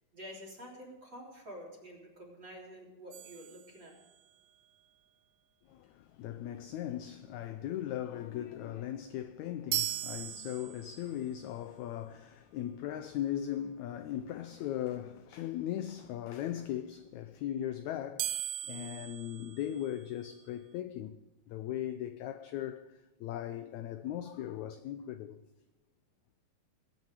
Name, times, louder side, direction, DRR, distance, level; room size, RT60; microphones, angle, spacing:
voice 1, 0.1-4.0, equal, 35° right, 3.7 m, -48 dB
sound 1, 3.1-4.4 9.7-11.2 18.2-20.3, right 12 dB, 80° right, 2.0 m, -38 dB
voice 2, 5.7-21.2 21.5-25.4, left 11 dB, 80° left, 1.6 m, -38 dB
20.5 x 9.2 x 4.9 m
omnidirectional pair, 3.9 m